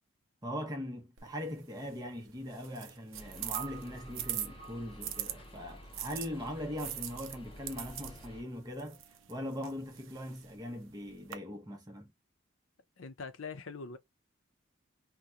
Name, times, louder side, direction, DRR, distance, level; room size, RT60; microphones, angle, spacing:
voice 1, 0.4-9.0 9.3-12.1, equal, 20° right, 0.8 m, -41 dB
sound 1, 1.2-5.3 5.9-11.3, right 11 dB, 75° right, 0.5 m, -43 dB
sound 2, 3.1-8.4, equal, 25° left, 0.6 m, -51 dB
sound 3, 3.5-10.0, right 9 dB, 60° right, 0.8 m, -54 dB
voice 2, 13.0-14.0, left 4 dB, 80° left, 0.6 m, -43 dB
2.8 x 2.2 x 3.5 m
head